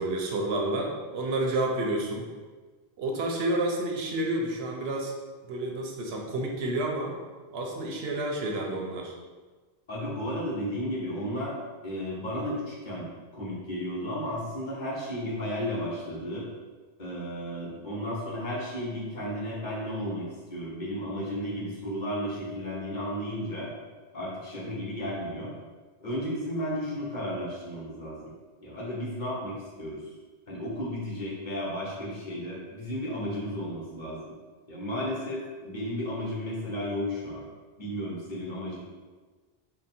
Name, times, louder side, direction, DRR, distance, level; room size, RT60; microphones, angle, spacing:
voice 1, 0.0-2.3 3.0-5.1 5.5-7.1 7.5-9.1, right 1 dB, 85° right, 0 dB, 0.9 m, -30 dB
voice 2, 9.9-11.5 11.8-16.5 17.0-23.7 24.1-25.5 26.0-28.3 28.6-30.0 30.5-34.2 34.7-37.4 37.8-38.8, equal, 50° left, -6 dB, 1.1 m, -33 dB
3.7 x 2.1 x 4.2 m, 1.4 s
omnidirectional pair, 1.0 m